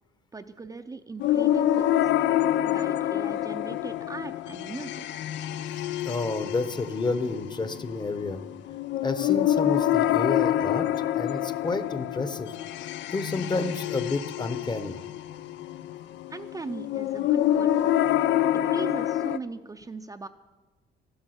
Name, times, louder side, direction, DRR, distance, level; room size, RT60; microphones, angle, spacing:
voice 1, 0.3-2.1 2.6-5.3 16.3-18.1 18.6-20.3, right 3 dB, 20° right, 6 dB, 0.6 m, -39 dB
sound 1, 1.2-19.4, left 12 dB, 70° left, 0.6 m, -27 dB
voice 2, 6.0-8.4 9.0-10.9 11.1-12.5 13.1-15.0, left 3 dB, 20° left, 11 dB, 1.0 m, -30 dB
13.5 x 12.0 x 8.0 m, 1.2 s
cardioid pair, 130°, 19 cm